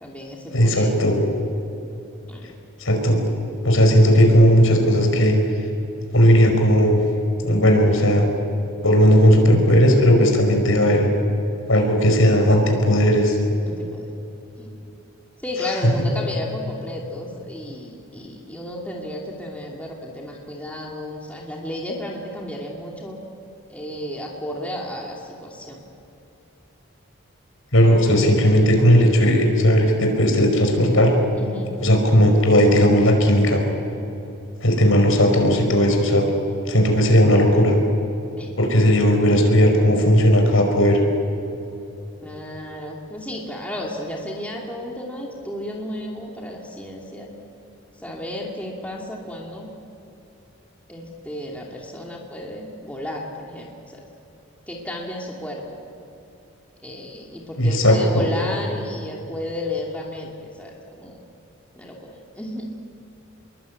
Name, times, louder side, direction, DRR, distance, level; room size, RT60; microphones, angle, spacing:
voice 1, 0.0-1.0 2.3-2.5 13.6-14.1 14.6-14.8 15.4-23.2 23.7-25.8 27.9-28.0 31.4-31.7 38.4-38.5 42.2-47.3 48.0-49.7 50.9-54.0 54.7-55.6 56.8-61.2 61.7-62.7, left 1 dB, 5° left, -2 dB, 2.7 m, -33 dB
voice 2, 0.5-1.2 2.8-3.2 3.6-5.4 6.1-7.0 7.4-8.3 8.8-11.1 11.7-13.4 15.6-15.8 27.7-31.1 31.8-33.6 34.6-36.3 36.7-37.7 38.6-41.0 57.6-58.2, equal, 70° left, 3 dB, 5.2 m, -16 dB
26.5 x 22.5 x 8.5 m, 2.9 s
head